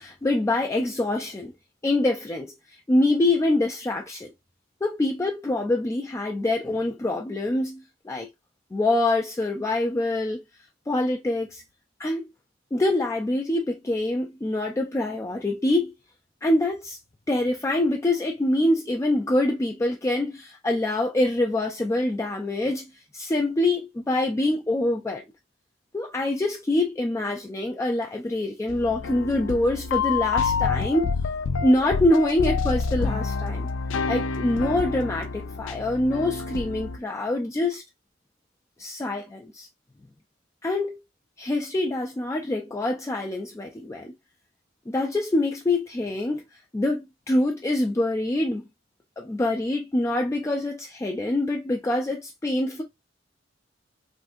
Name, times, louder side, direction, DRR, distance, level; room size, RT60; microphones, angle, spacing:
voice 1, 0.0-1.5 1.8-4.3 4.8-8.3 8.7-10.4 10.9-11.6 12.0-12.3 12.7-15.9 16.4-17.0 17.3-25.2 25.9-31.1 31.6-33.7 34.1-37.8 38.8-39.7 40.6-41.0 41.4-44.1 44.9-48.7 49.2-52.8, left 1 dB, 15° left, 0.3 m, -25 dB
sound 1, 28.7-37.0, left 5 dB, 85° left, 0.4 m, -28 dB
3.6 x 2.6 x 2.5 m
head